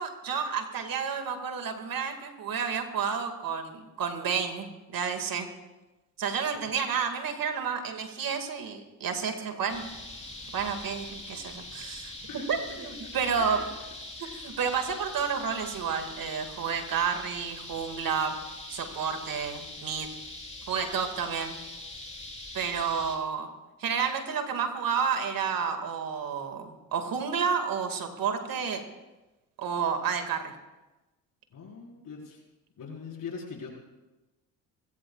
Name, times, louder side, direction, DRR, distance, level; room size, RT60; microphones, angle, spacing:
voice 1, 0.0-5.5 6.2-9.8 10.5-13.6 14.3-18.4 18.7-20.1 20.7-21.6 22.5-23.5 23.8-28.8 29.6-30.5, right 6 dB, 60° right, 6 dB, 2.2 m, -30 dB
sound 1, 9.7-23.2, left 2 dB, 15° left, 3.9 m, -43 dB
voice 2, 31.5-32.4 32.8-33.7, left 5 dB, 55° left, -1 dB, 5.1 m, -42 dB
27.0 x 16.0 x 2.4 m, 1.1 s
supercardioid pair, 65°, 39 cm